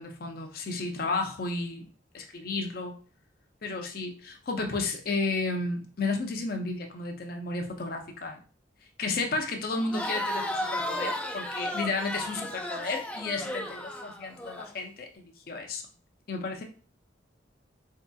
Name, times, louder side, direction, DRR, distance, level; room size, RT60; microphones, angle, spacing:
voice 1, 0.0-1.9 2.1-2.9 3.6-8.4 9.0-15.8 16.3-16.6, left 3 dB, 50° left, 3 dB, 0.6 m, -32 dB
Crowd, 9.7-14.7, left 1 dB, 5° left, 0.4 m, -34 dB
4.1 x 2.7 x 2.3 m, 0.39 s
head